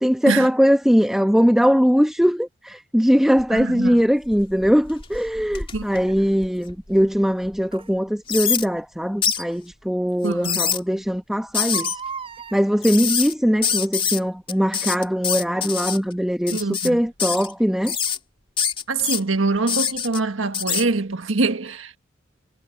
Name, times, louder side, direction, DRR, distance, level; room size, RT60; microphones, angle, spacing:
voice 1, 0.0-12.0 12.5-18.0, equal, ahead, 1.1 m, -20 dB
sound 1, 3.4-3.9 4.3-7.0 7.5-7.6 8.3-8.7 9.2-9.4 10.3-10.8 11.5-12.0 12.8-13.3 13.6-14.2 14.5-16.0 16.5-16.9 17.2-17.5 17.8-18.2 18.6-19.2 19.7-20.2 20.5-20.8, left 7 dB, 30° left, 2.7 m, -25 dB
voice 2, 3.5-4.0 5.7-6.3 10.2-10.7 16.5-17.0 18.9-22.0, right 3 dB, 80° right, 1.5 m, -24 dB
Crying sobbing, 5.1-5.3 7.7-7.9 9.5-9.6 10.1-10.2 10.4-10.5 11.6-12.6 13.6-13.9 14.5-14.6, right 6 dB, 30° right, 4.4 m, -36 dB
head